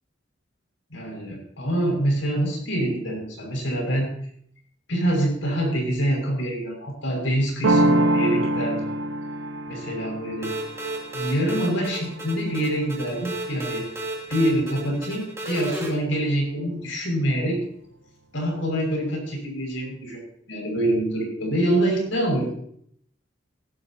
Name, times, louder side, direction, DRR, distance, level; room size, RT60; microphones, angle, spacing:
voice 1, 0.9-4.1 4.9-8.8 9.7-10.5 11.1-13.9 14.3-17.6 18.3-20.2 20.5-22.8, right 1 dB, 85° left, 1 dB, 6.0 m, -25 dB
sound 1, 7.6-13.2, right 1 dB, 80° right, 0.9 m, -25 dB
sound 2, 10.4-15.9, right 2 dB, 15° right, 2.9 m, -33 dB
19.5 x 12.0 x 2.9 m, 0.66 s
head